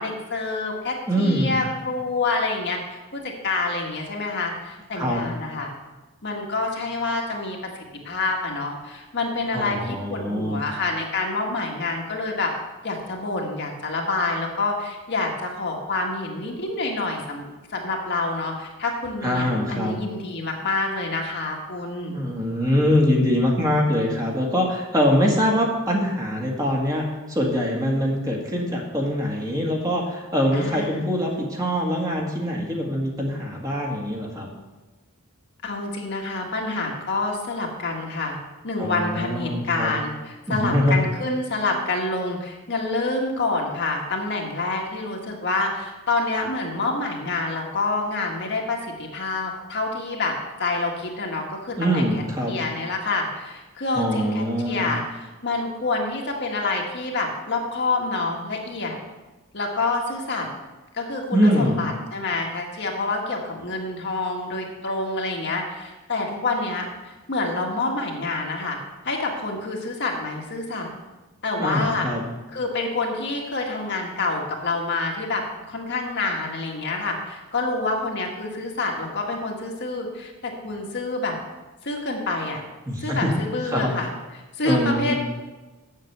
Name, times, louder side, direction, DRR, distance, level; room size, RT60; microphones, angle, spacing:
voice 1, 0.0-5.7 6.2-12.5 12.8-22.2 30.5-31.1 35.6-38.4 38.6-50.3 50.6-52.1 52.5-59.0 59.5-60.5 60.9-70.9 71.4-72.1 72.5-81.4 81.8-82.6 83.0-84.1 84.6-85.1, left 3 dB, 55° left, 0 dB, 1.7 m, -27 dB
voice 2, 1.1-1.6 4.9-5.2 9.5-10.6 19.2-20.0 22.1-34.5 38.8-39.9 40.5-41.0 51.8-52.5 53.9-54.9 61.3-61.8 71.6-72.2 82.9-83.3 83.7-83.9 84.6-85.1, equal, 15° right, -1 dB, 1.8 m, -23 dB
8.0 x 7.7 x 6.7 m, 1.2 s
head